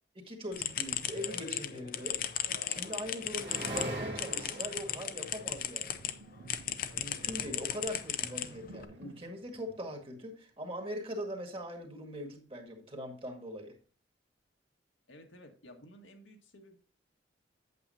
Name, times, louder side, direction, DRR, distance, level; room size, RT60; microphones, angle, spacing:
voice 1, 0.2-2.2 2.7-6.0 7.0-13.7, equal, 30° right, 3 dB, 1.8 m, -41 dB
sound 1, 0.5-6.1 6.5-8.8, left 10 dB, 50° left, 0.6 m, -36 dB
sound 2, 2.8-6.4 7.2-8.1, right 1 dB, 65° right, 1.9 m, -41 dB
Sink (filling or washing), 3.4-10.7, right 2 dB, 90° right, 0.7 m, -55 dB
voice 2, 15.1-16.8, equal, 90° left, 3 dB, 1.7 m, -54 dB
8.4 x 8.2 x 2.7 m, 0.39 s
head